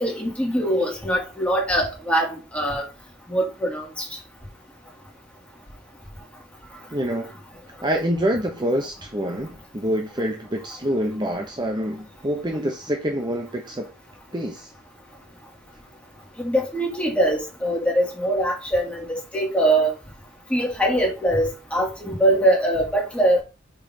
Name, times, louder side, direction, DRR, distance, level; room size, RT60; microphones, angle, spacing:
voice 1, 0.0-2.8 3.3-4.1 16.4-19.9 20.5-23.4, right 1 dB, 5° left, 2.5 m, -22 dB
voice 2, 6.9-7.3 7.8-13.9 14.3-14.7, equal, 25° right, 0.9 m, -26 dB
5.5 x 4.5 x 5.2 m
head